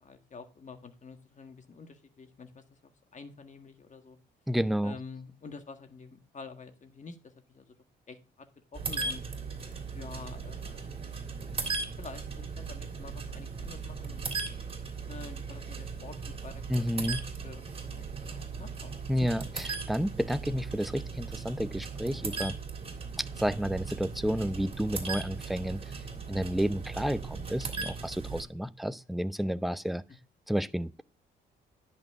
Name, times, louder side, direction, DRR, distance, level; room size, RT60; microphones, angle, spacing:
voice 1, 0.0-4.2 4.8-7.7 8.1-8.5 8.7-9.2 9.9-11.3 12.0-14.6 15.1-16.2 16.4-19.3, left 4 dB, 40° left, 1.7 m, -48 dB
voice 2, 4.5-5.0 16.7-17.3 19.1-19.4 19.9-22.5 23.2-25.8 26.3-30.0 30.5-31.0, equal, ahead, 0.5 m, -31 dB
sound 1, 8.7-28.4, right 4 dB, 30° right, 3.0 m, -38 dB
10.5 x 6.1 x 3.6 m
cardioid pair, 90°, 20 cm